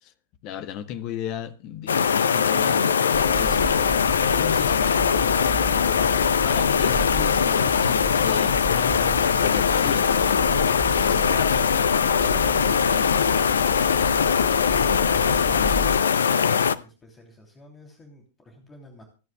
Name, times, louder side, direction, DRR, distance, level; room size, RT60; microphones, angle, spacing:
voice 1, 0.4-3.9 4.3-5.8 6.4-10.5, left 10 dB, 40° left, 1.0 m, -35 dB
sound 1, 1.9-16.8, left 7 dB, 70° left, 0.6 m, -21 dB
sound 2, 3.1-16.0, right 2 dB, 5° right, 1.7 m, -34 dB
voice 2, 16.3-19.0, left 2 dB, 20° left, 2.9 m, -46 dB
26.0 x 9.4 x 2.2 m
figure-of-eight pair, 90°, 0 cm